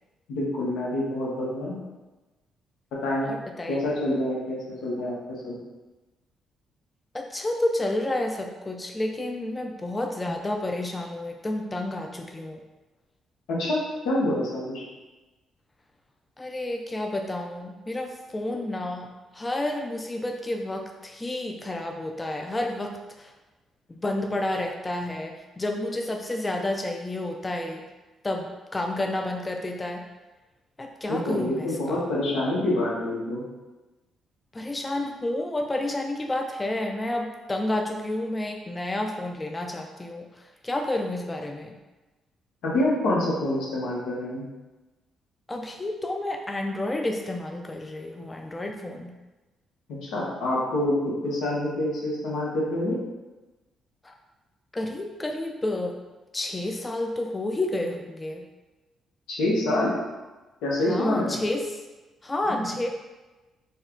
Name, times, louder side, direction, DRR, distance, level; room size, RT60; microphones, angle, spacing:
voice 1, 0.3-1.7 3.0-3.3 3.7-4.6 4.8-5.1 5.4-5.6 13.5-13.8 14.0-14.8 31.1-33.4 42.6-44.4 50.0-50.9 51.2-53.0 59.3-59.9 60.6-61.4 62.5-62.6, left 1 dB, 90° left, -5 dB, 1.1 m, -26 dB
voice 2, 3.2-3.8 7.1-12.6 16.4-23.3 23.9-27.9 28.2-30.0 30.8-32.1 34.5-41.8 45.5-49.2 54.0-54.1 54.7-55.9 56.3-58.5 60.9-61.8 62.2-62.9, left 1 dB, 20° left, 2 dB, 0.4 m, -30 dB
4.1 x 2.4 x 3.7 m, 1.1 s
cardioid pair, 90°, 0 cm